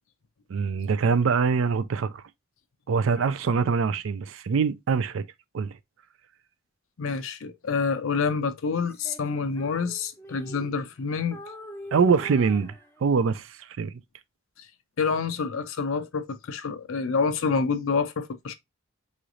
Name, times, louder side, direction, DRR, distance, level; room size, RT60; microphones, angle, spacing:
voice 1, 0.5-2.2 2.9-5.2 5.5-5.8 11.9-12.7 13.0-13.9, right 5 dB, 70° right, 0.4 m, -24 dB
voice 2, 7.0-11.4 14.6-14.7 15.0-18.5, left 5 dB, 75° left, 0.5 m, -27 dB
Female singing, 8.8-11.0 11.3-13.4, left 1 dB, 10° left, 0.4 m, -44 dB
3.9 x 3.1 x 2.4 m
head